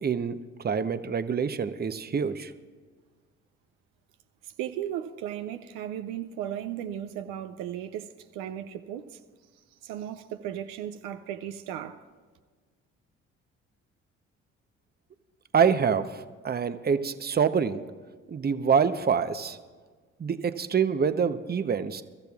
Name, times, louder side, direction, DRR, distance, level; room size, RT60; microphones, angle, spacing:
voice 1, 0.0-2.5 15.5-17.8 18.3-19.6 20.2-22.0, right 6 dB, 30° right, 0.8 m, -26 dB
voice 2, 4.6-9.2 9.8-12.0, right 10 dB, 80° right, 0.7 m, -36 dB
24.0 x 13.0 x 2.4 m
hypercardioid pair, 60°, 32 cm